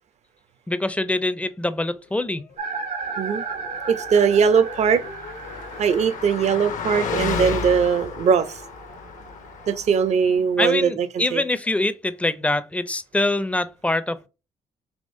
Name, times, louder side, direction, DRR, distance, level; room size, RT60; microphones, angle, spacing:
voice 1, 0.7-2.5 10.6-14.3, left 2 dB, 10° left, 0.4 m, -24 dB
sound 1, 1.5-6.2, left 5 dB, 85° left, 1.0 m, -44 dB
sound 2, 2.6-10.6, right 5 dB, 70° right, 1.1 m, -36 dB
voice 2, 3.9-5.1 5.8-8.6 9.7-11.4, right 6 dB, 50° right, 0.5 m, -20 dB
Car passing by, 4.1-10.1, left 5 dB, 60° left, 0.5 m, -32 dB
3.5 x 3.0 x 2.6 m
hypercardioid pair, 50°, 14 cm